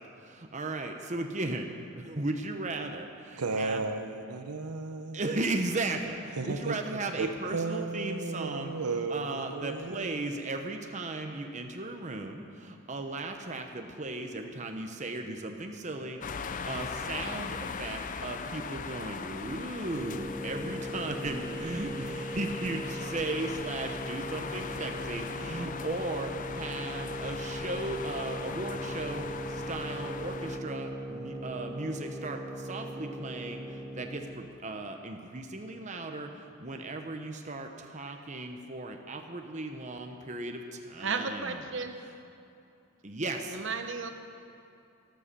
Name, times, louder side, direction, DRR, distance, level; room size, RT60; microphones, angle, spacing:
voice 1, 0.0-3.8 5.1-8.7 9.1-41.6 43.0-43.6, right 2 dB, 30° right, 0.9 m, -36 dB
voice 2, 3.4-5.4 6.4-6.8 7.2-10.4, right 3 dB, 90° right, 0.9 m, -34 dB
sound 1, 16.2-30.6, left 5 dB, 35° left, 0.5 m, -40 dB
sound 2, 19.8-34.4, equal, 5° right, 2.4 m, -39 dB
voice 3, 41.0-42.0 43.5-44.1, right 4 dB, 55° right, 1.1 m, -33 dB
13.0 x 12.5 x 6.8 m
head